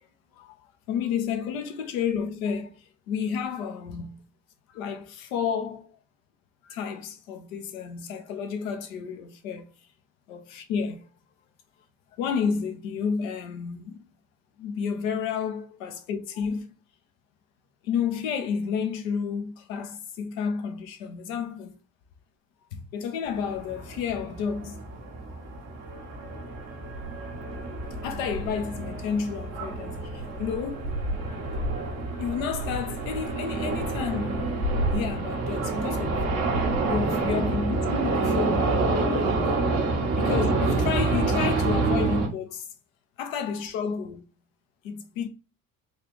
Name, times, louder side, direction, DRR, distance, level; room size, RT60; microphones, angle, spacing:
voice 1, 0.9-4.2 4.7-5.9 6.6-9.7 10.3-11.1 12.2-14.0 14.6-16.7 17.8-21.8 22.7-24.7 25.3-25.4 28.0-30.9 32.2-36.2 36.9-39.6 40.1-42.7 43.2-44.2 44.8-45.3, left 6 dB, 75° left, 0.8 m, -31 dB
sound 1, 23.2-42.3, right 3 dB, 75° right, 1.2 m, -28 dB
4.1 x 2.4 x 3.1 m
hypercardioid pair, 55°, 41 cm